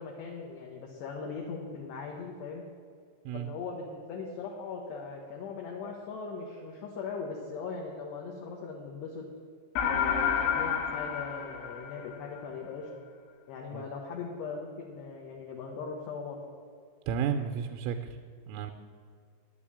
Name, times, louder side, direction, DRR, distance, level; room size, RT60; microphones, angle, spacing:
voice 1, 0.0-2.6 3.3-9.3 9.8-12.9 13.5-16.4, left 5 dB, 70° left, -2 dB, 3.0 m, -39 dB
sound 1, 9.8-12.4, left 7 dB, 90° left, 3.9 m, -29 dB
voice 2, 17.1-18.2 18.5-18.7, right 7 dB, 85° right, 4 dB, 3.2 m, -32 dB
10.5 x 7.6 x 8.5 m, 2.1 s
omnidirectional pair, 5.6 m